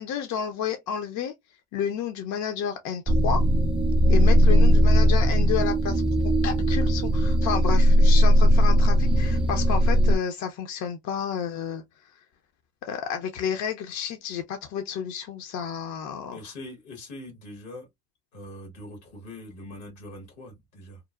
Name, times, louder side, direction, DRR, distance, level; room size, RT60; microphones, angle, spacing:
voice 1, 0.0-1.3 1.7-3.5 4.1-11.8 12.8-16.5, left 8 dB, 60° left, 0.6 m, -31 dB
sound 1, 3.1-10.2, equal, 15° right, 0.5 m, -19 dB
voice 2, 16.3-17.9 18.3-21.0, left 1 dB, 85° left, 1.4 m, -42 dB
2.9 x 2.1 x 2.3 m
hypercardioid pair, 65°, 33 cm